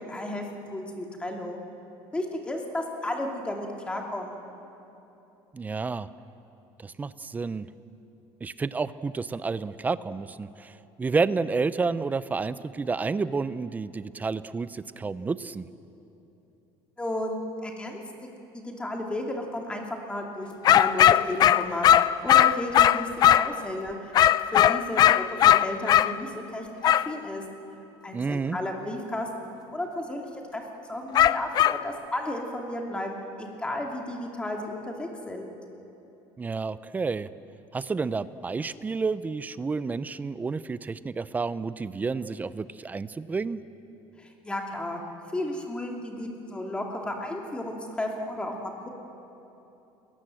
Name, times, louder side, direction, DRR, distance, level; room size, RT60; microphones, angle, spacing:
voice 1, 0.1-0.4 0.7-1.6 2.1-4.4 17.0-18.0 18.5-27.4 28.0-29.3 29.7-30.6 30.9-35.5 44.2-45.0 45.3-48.9, left 1 dB, 10° left, 1 dB, 2.7 m, -33 dB
voice 2, 5.5-6.1 6.8-7.7 8.4-15.7 28.1-28.6 36.4-37.3 37.7-43.6, right 4 dB, 15° right, 15 dB, 0.6 m, -30 dB
sound 1, 20.6-23.6 24.1-26.1 26.8-27.1 31.1-31.8, left 11 dB, 40° left, 0.5 m, -18 dB
29.5 x 21.0 x 7.8 m, 3.0 s
cardioid pair, 155°, 11 cm